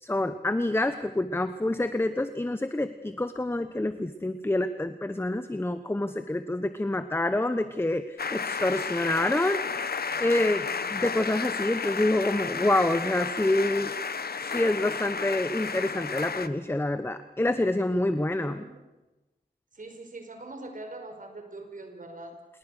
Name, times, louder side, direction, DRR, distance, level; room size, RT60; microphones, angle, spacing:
voice 1, 0.0-13.9 14.4-18.6, left 1 dB, 15° left, 11 dB, 1.1 m, -27 dB
sound 1, 8.2-16.5, left 5 dB, 70° left, 1.2 m, -32 dB
voice 2, 18.4-18.8 19.7-22.5, right 2 dB, 55° right, 5 dB, 5.0 m, -43 dB
28.0 x 21.0 x 6.6 m, 1.1 s
wide cardioid pair, 75°, 16 cm